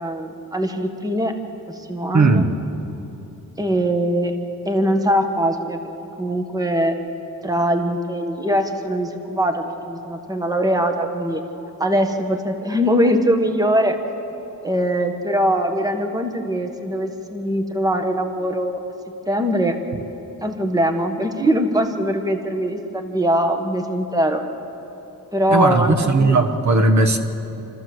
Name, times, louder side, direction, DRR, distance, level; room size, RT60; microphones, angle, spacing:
voice 1, 0.0-1.3 1.7-2.4 3.6-4.3 4.6-5.8 6.2-6.9 7.4-11.4 11.8-14.0 14.6-18.8 19.3-19.8 20.4-24.4 25.3-26.4, equal, 10° right, 1.4 m, -21 dB
voice 2, 2.1-2.5 25.5-27.2, right 3 dB, 50° right, 1.4 m, -17 dB
28.0 x 14.0 x 7.8 m
wide cardioid pair, 130°, 35 cm